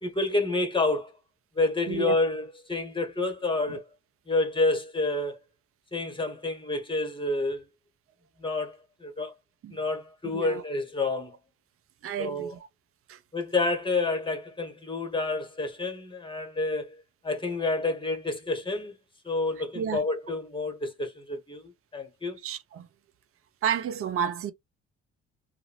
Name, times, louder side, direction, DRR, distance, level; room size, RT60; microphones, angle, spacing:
voice 1, 0.0-1.2 1.5-3.8 4.3-5.4 5.9-7.6 8.4-9.3 9.7-11.4 12.2-12.5 13.3-18.9 19.2-22.4, left 2 dB, 15° left, 1.4 m, -29 dB
voice 2, 12.0-12.5 13.1-13.2 19.7-20.0 22.4-22.9 23.6-24.5, right 8 dB, 45° right, 0.6 m, -30 dB
2.7 x 2.5 x 3.0 m
hypercardioid pair, 50°, 31 cm